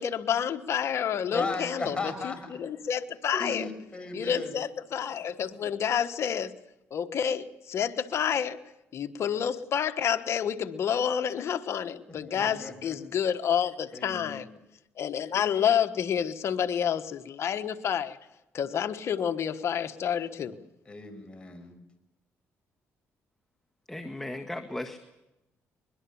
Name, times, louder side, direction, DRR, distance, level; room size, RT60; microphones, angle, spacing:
voice 1, 0.0-3.6 4.1-6.5 6.9-8.6 8.9-14.5 15.0-18.2 18.5-20.5, left 8 dB, 60° left, 8 dB, 1.3 m, -29 dB
voice 2, 1.3-2.4 3.3-4.5 12.1-13.0 13.9-14.5 20.4-20.5 20.9-21.7, left 3 dB, 20° left, 5 dB, 5.7 m, -36 dB
voice 3, 23.9-25.0, left 1 dB, 5° left, 4 dB, 1.7 m, -36 dB
23.0 x 21.5 x 7.2 m, 0.93 s
cardioid pair, 90°, 5 cm